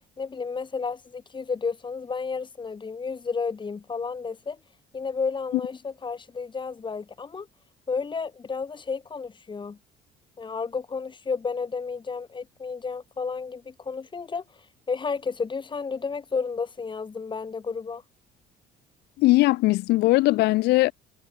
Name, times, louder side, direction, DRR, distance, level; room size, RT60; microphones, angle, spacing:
voice 1, 0.2-4.6 4.9-7.5 7.9-9.8 10.4-18.0, left 5 dB, 30° left, 4.2 m, -32 dB
voice 2, 19.2-20.9, left 19 dB, 75° left, 0.5 m, -20 dB
cardioid pair, 110°, 17 cm